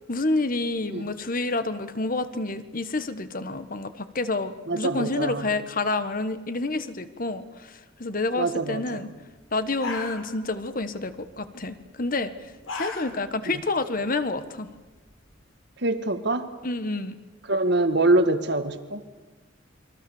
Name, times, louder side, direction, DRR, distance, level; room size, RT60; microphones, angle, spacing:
voice 1, 0.1-9.1 9.5-12.3 12.7-14.7 16.6-17.2, left 2 dB, 45° left, 11 dB, 1.4 m, -28 dB
voice 2, 4.7-5.5 8.4-9.1 13.5-13.6 15.8-16.5 17.5-19.0, right 2 dB, 60° right, 9 dB, 1.8 m, -24 dB
sound 1, 9.3-9.4 9.7-10.7 11.0-11.3 12.3-13.4 13.8-13.9 14.4-15.4, left 3 dB, 80° left, 3.9 m, -36 dB
29.0 x 23.0 x 7.2 m, 1.2 s
head